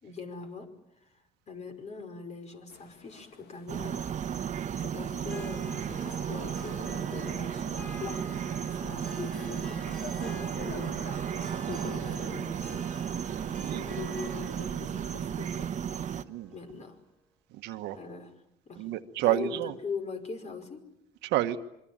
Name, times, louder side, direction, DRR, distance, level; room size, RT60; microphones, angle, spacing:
voice 1, 0.0-4.1 4.8-8.3 8.7-12.9 13.4-15.8 16.5-17.0 17.9-18.4 18.7-18.9 19.2-20.9, left 5 dB, 40° left, 7 dB, 5.4 m, -42 dB
sound 1, 2.7-13.5, left 7 dB, 75° left, 2.5 m, -51 dB
sound 2, 3.7-16.2, right 8 dB, 45° right, 1.2 m, -34 dB
Harp, 5.2-17.1, left 1 dB, 5° left, 2.8 m, -49 dB
voice 2, 13.5-13.8 16.2-16.5 17.5-18.0 18.8-19.7 21.2-21.6, right 14 dB, 90° right, 9 dB, 1.4 m, -30 dB
26.5 x 24.0 x 8.9 m, 0.83 s
cardioid pair, 110°, 17 cm